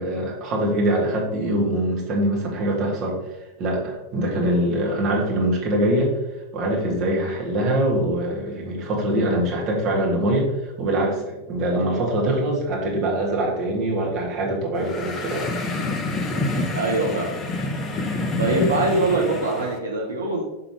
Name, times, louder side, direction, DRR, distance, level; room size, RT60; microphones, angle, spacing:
voice 1, 0.0-3.2 3.6-6.2 6.5-15.6, right 1 dB, 35° right, -3 dB, 1.9 m, -23 dB
sound 1, 14.8-19.8, left 2 dB, 25° left, 0.7 m, -27 dB
voice 2, 16.7-17.4 18.4-20.4, right 2 dB, 70° right, -1 dB, 0.9 m, -23 dB
5.9 x 3.8 x 4.7 m, 0.98 s
figure-of-eight pair, 90°, 0 cm